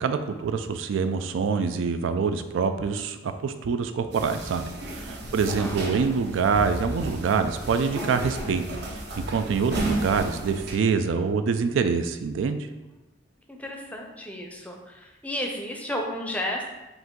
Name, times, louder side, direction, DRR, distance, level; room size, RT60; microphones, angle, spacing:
voice 1, 0.0-8.6 8.9-12.6, right 5 dB, 90° right, 9 dB, 0.3 m, -25 dB
sound 1, 4.1-10.8, right 1 dB, 60° right, 0.8 m, -33 dB
voice 2, 5.0-5.8 13.5-16.6, left 1 dB, 10° left, 1 dB, 0.5 m, -33 dB
4.9 x 2.6 x 3.7 m, 1.1 s
head